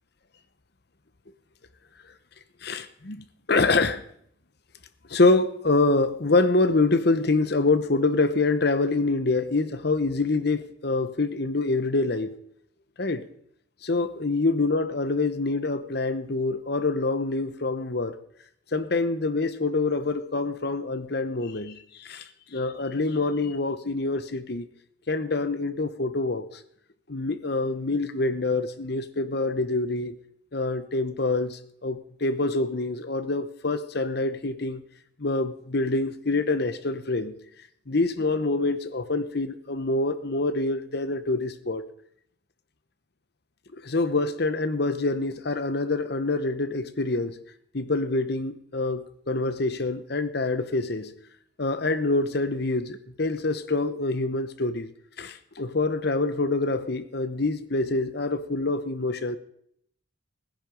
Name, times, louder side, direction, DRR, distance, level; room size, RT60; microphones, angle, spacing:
voice 1, 2.6-4.0 5.1-12.3 13.0-13.2 13.8-18.2 18.7-24.7 25.1-26.6 27.1-30.2 30.5-34.8 35.2-37.3 37.9-41.8 43.7-47.4 47.7-51.1 51.6-54.9 55.2-59.4, left 3 dB, 55° left, 1.0 m, -26 dB
19.5 x 10.5 x 5.3 m
head